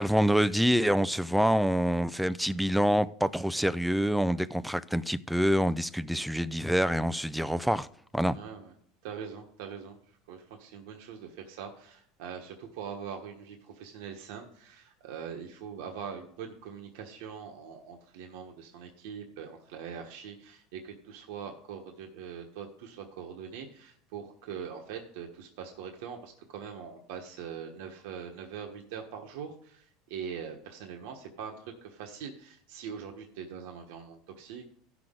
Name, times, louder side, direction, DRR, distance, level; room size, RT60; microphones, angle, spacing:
voice 1, 0.0-7.9 8.1-8.4, equal, ahead, 0.4 m, -26 dB
voice 2, 8.2-8.7 9.0-10.0 10.3-34.7, right 7 dB, 80° right, 1.3 m, -42 dB
16.0 x 6.1 x 3.8 m
supercardioid pair, 140°, 0 cm